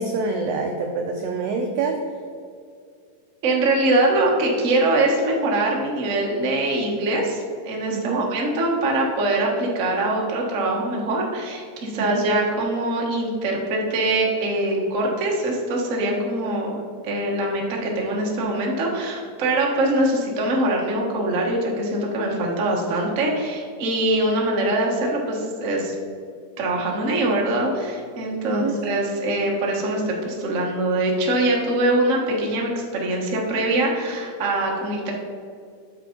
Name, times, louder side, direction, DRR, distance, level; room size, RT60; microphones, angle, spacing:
voice 1, 0.0-2.0 7.9-8.2 11.9-12.2 28.4-28.8, right 4 dB, 85° right, 3 dB, 1.4 m, -26 dB
voice 2, 3.4-25.9 26.6-35.1, right 1 dB, 65° right, -2 dB, 0.7 m, -23 dB
8.7 x 6.6 x 3.9 m, 2.3 s
omnidirectional pair, 3.7 m